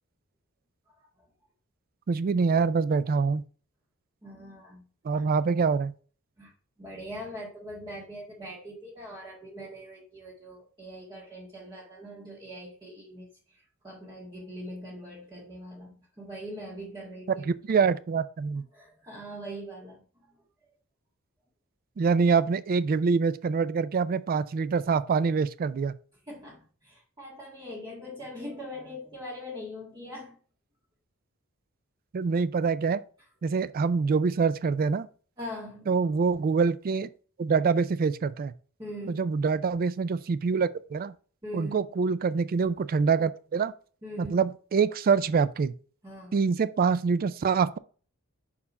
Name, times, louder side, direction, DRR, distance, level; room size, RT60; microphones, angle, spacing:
voice 1, 2.1-3.4 5.0-5.9 17.5-18.6 22.0-25.9 32.1-33.0 33.4-35.1 35.9-37.1 37.4-38.5 39.1-41.1 41.5-43.7 44.2-45.7 46.3-47.8, right 5 dB, 40° right, 0.3 m, -25 dB
voice 2, 4.2-4.8 6.4-6.5 6.8-17.4 18.7-20.3 26.3-30.4 33.4-33.6 35.4-35.9 38.8-39.3 41.4-41.8 44.0-44.4 46.0-46.4, equal, 20° right, 1.7 m, -42 dB
5.7 x 4.5 x 4.1 m
head